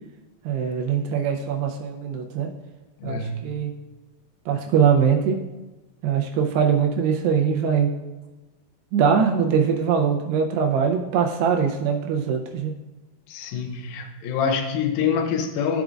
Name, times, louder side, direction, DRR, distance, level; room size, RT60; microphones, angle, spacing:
voice 1, 0.5-2.5 3.0-3.7 4.5-5.4 6.0-7.9 8.9-12.7, right 7 dB, 85° right, 2 dB, 2.6 m, -22 dB
voice 2, 3.0-3.5 13.3-15.8, left 6 dB, 85° left, 5 dB, 2.0 m, -26 dB
13.5 x 5.0 x 2.4 m, 1.1 s
omnidirectional pair, 4.8 m